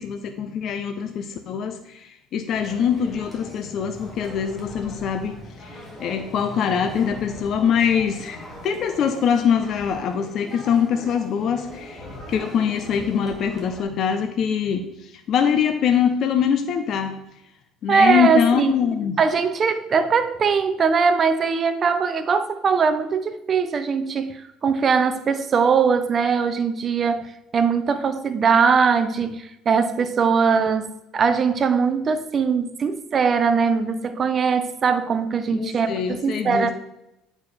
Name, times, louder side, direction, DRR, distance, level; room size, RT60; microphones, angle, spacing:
voice 1, 0.0-5.3 5.6-17.2 17.8-19.2 35.5-36.7, left 7 dB, 45° left, 0.6 m, -23 dB
sound 1, 2.5-13.8, left 1 dB, 5° left, 2.1 m, -40 dB
voice 2, 17.9-18.7 19.2-36.7, right 5 dB, 30° right, 0.6 m, -21 dB
8.6 x 4.6 x 4.2 m
cardioid pair, 135°, 0 cm